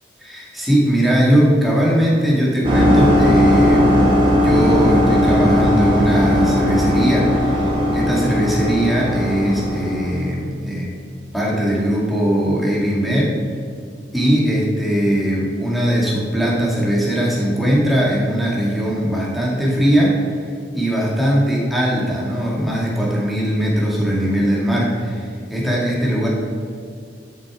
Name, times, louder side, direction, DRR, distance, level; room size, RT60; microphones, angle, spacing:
voice 1, 0.2-10.9 11.3-13.4 14.1-20.3 20.7-26.3, equal, ahead, -5 dB, 2.1 m, -19 dB
sound 1, 2.6-10.3, left 1 dB, 30° right, 1.9 m, -17 dB
11.5 x 6.8 x 4.8 m, 2.2 s
head